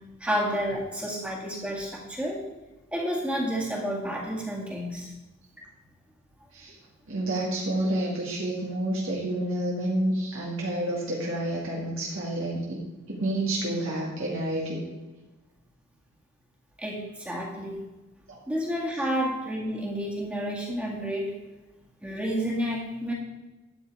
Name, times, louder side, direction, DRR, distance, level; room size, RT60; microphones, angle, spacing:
voice 1, 0.2-2.4 2.9-5.1 16.8-17.8 18.5-21.3 22.0-23.1, equal, 5° right, -2 dB, 2.0 m, -30 dB
voice 2, 7.1-12.8 13.1-14.8 18.3-18.4, right 1 dB, 65° right, -4 dB, 2.1 m, -29 dB
12.0 x 8.7 x 4.8 m, 1.1 s
head